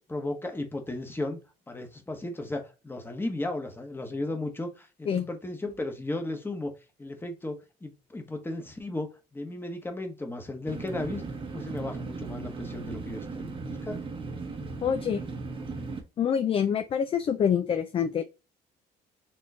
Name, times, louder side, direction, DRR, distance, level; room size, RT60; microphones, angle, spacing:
voice 1, 0.0-1.4 1.7-6.7 7.0-11.2 11.5-14.0, left 2 dB, 15° left, 1.0 m, -35 dB
sound 1, 10.7-16.0, right 4 dB, 30° right, 0.9 m, -37 dB
voice 2, 14.8-15.2 16.2-18.2, left 8 dB, 35° left, 0.4 m, -26 dB
4.3 x 3.0 x 2.8 m
cardioid pair, 110°, 17 cm